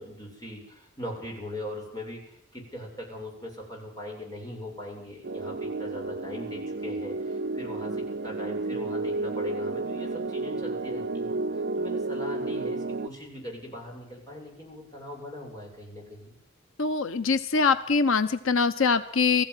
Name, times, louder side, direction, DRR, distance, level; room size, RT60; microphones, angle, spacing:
voice 1, 0.0-16.3, left 1 dB, 20° left, -1 dB, 7.7 m, -40 dB
sound 1, 5.2-13.1, right 2 dB, 50° right, 0.9 m, -31 dB
voice 2, 16.8-19.4, left 5 dB, 85° left, 11 dB, 1.0 m, -23 dB
20.0 x 15.0 x 9.9 m, 0.67 s
head